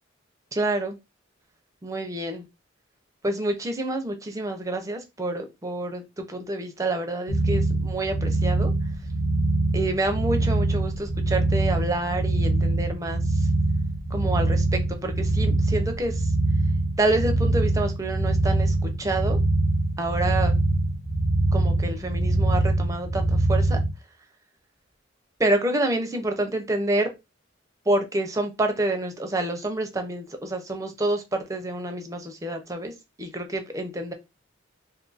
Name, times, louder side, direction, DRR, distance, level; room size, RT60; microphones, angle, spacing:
voice 1, 0.5-1.0 1.8-2.5 3.2-8.7 9.7-13.5 14.1-16.3 17.0-19.4 20.0-20.5 21.5-23.8 25.4-27.1 27.9-32.9 33.2-34.1, right 2 dB, 15° right, 5 dB, 0.5 m, -28 dB
sound 1, 7.3-23.9, right 2 dB, 65° left, 1.1 m, -23 dB
2.6 x 2.5 x 3.9 m, 0.24 s
head